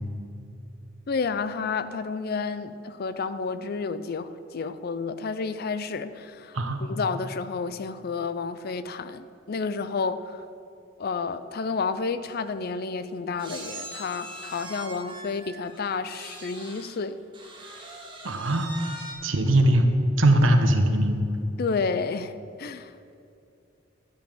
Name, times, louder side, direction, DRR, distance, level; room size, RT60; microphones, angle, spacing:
voice 1, 1.1-10.4 11.0-17.2 21.6-22.3 22.6-22.9, left 4 dB, 50° left, 0.5 m, -30 dB
sound 1, 12.0-12.1 12.3-12.5 13.4-17.0 17.3-19.1, right 1 dB, 25° right, 1.8 m, -42 dB
voice 2, 18.2-18.7 19.2-19.9 20.2-21.2, right 1 dB, 80° right, 1.0 m, -20 dB
11.5 x 5.4 x 7.4 m
head